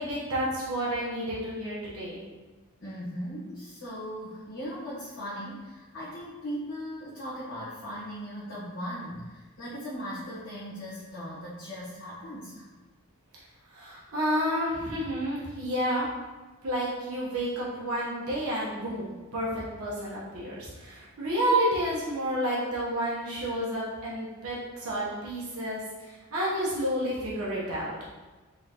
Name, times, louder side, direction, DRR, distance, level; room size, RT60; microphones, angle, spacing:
voice 1, 0.0-2.2 13.7-16.1 16.6-28.0, equal, 75° right, -7 dB, 1.0 m, -30 dB
voice 2, 2.8-12.7, equal, 55° left, -11 dB, 1.1 m, -38 dB
3.7 x 3.7 x 2.8 m, 1.3 s
head